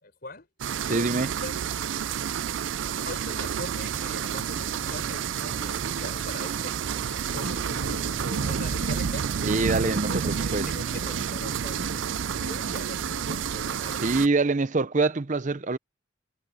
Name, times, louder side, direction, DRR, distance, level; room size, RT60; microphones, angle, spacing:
voice 1, 0.0-0.5 0.8-1.6 3.0-9.3 9.8-14.1, left 2 dB, 50° left, 5.1 m, -42 dB
sound 1, 0.6-14.3, right 8 dB, 65° right, 0.4 m, -30 dB
voice 2, 0.9-1.3 9.4-10.7 14.0-15.8, right 3 dB, 40° right, 0.7 m, -25 dB
sound 2, 2.7-11.8, equal, 20° right, 4.2 m, -46 dB
sound 3, 7.3-13.8, right 1 dB, 90° right, 3.1 m, -37 dB
head